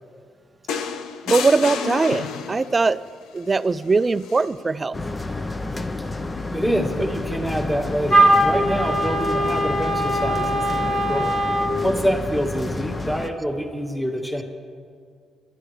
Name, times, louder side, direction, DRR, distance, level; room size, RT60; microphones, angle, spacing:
sound 1, 0.7-2.8 4.2-4.4, left 6 dB, 85° left, 0.8 m, -29 dB
voice 1, 1.3-3.0 3.3-5.0, right 3 dB, 30° right, 15 dB, 0.4 m, -20 dB
sound 2, 4.9-13.3, left 2 dB, 20° left, 0.8 m, -30 dB
voice 2, 6.5-11.4 11.8-14.4, equal, 5° left, 2 dB, 1.7 m, -26 dB
Wind instrument woodwind instrument, 8.1-11.7, right 1 dB, 65° left, 3.8 m, -20 dB
25.5 x 12.5 x 3.3 m, 2.2 s
cardioid pair, 90°, 0 cm